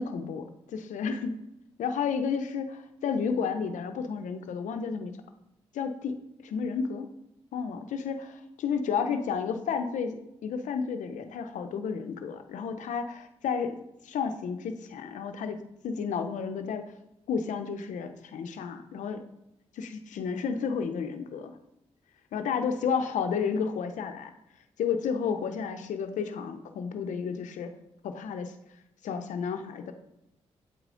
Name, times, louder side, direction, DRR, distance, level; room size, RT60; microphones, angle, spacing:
voice 1, 0.0-1.4 1.8-5.1 5.7-6.2 6.4-7.1 7.5-13.8 14.0-16.9 17.3-19.2 19.8-21.6 22.3-24.3 24.8-27.7 28.0-28.5 29.0-29.9, left 6 dB, 80° left, 7 dB, 0.6 m, -32 dB
8.2 x 4.8 x 3.8 m, 0.85 s
supercardioid pair, 50°, 13 cm